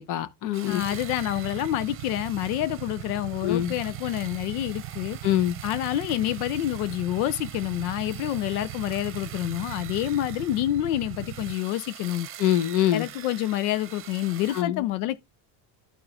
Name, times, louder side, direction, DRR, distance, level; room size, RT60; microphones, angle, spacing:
voice 1, 0.0-0.9 3.4-3.7 5.2-5.6 12.4-13.1 14.5-14.8, left 12 dB, 45° left, 0.8 m, -24 dB
sound 1, 0.5-14.6, right 11 dB, 30° right, 0.8 m, -44 dB
voice 2, 0.7-5.2 5.6-12.3 12.9-15.3, left 14 dB, 85° left, 0.6 m, -28 dB
Motorcycle / Idling, 0.8-11.5, right 14 dB, 60° right, 0.7 m, -39 dB
12.0 x 4.7 x 2.4 m
supercardioid pair, 130°, 43 cm